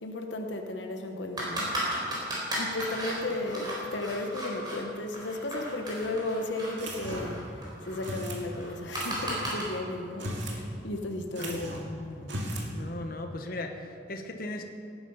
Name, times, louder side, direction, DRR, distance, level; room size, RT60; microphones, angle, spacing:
voice 1, 0.0-1.7 2.5-7.4 7.8-11.7, left 2 dB, 75° left, 4 dB, 0.9 m, -34 dB
sound 1, 1.4-4.8 5.1-9.6, right 1 dB, 20° right, 3.9 m, -36 dB
sound 2, 6.8-7.4 8.0-8.4 8.9-9.4 10.1-10.6 10.9-11.0 11.3-11.9 12.2-12.7, right 1 dB, 70° right, 2.2 m, -36 dB
voice 2, 11.4-12.4 12.7-14.7, left 1 dB, 50° left, 4 dB, 1.1 m, -38 dB
17.5 x 9.2 x 5.5 m, 2.7 s
head